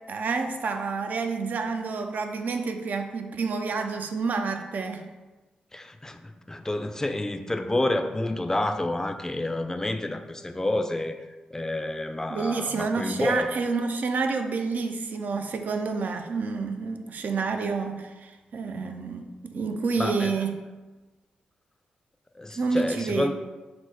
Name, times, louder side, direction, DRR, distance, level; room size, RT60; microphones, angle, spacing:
voice 1, 0.1-5.1 12.3-20.6 22.6-23.3, right 4 dB, 60° right, 0.4 m, -29 dB
voice 2, 5.7-11.2 11.5-13.5 20.0-20.3 22.3-23.3, left 1 dB, 15° left, 0.4 m, -29 dB
4.3 x 2.0 x 4.2 m
supercardioid pair, 45°, 3 cm